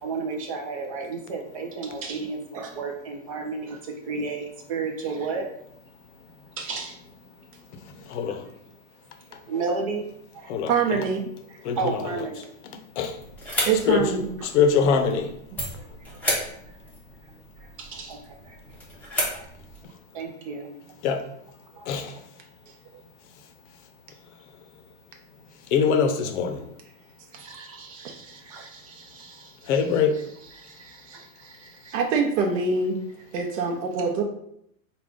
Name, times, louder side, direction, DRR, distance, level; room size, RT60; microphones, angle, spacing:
voice 1, 0.0-5.5 6.6-7.0 9.5-10.1 10.3-10.5 11.5-12.5 15.8-15.9 17.8-18.6 19.3-19.5 20.1-20.8 21.7-21.9 22.9-23.0 27.3-29.7 30.5-32.0, right 4 dB, 30° right, 2 dB, 0.3 m, -33 dB
voice 2, 8.1-8.4 10.5-11.0 11.6-12.2 12.6-13.1 13.9-14.1 14.4-15.3 21.0-21.2 21.9-22.1 25.7-26.6 29.7-30.2, left 6 dB, 55° left, 7 dB, 0.7 m, -23 dB
voice 3, 10.7-11.3 13.6-14.3 28.0-28.1 31.9-33.0 33.3-34.2, right 5 dB, 60° right, 2 dB, 0.8 m, -24 dB
sound 1, 13.1-19.9, left 1 dB, 5° left, 0.7 m, -33 dB
4.9 x 2.3 x 3.7 m, 0.74 s
supercardioid pair, 160°, 42 cm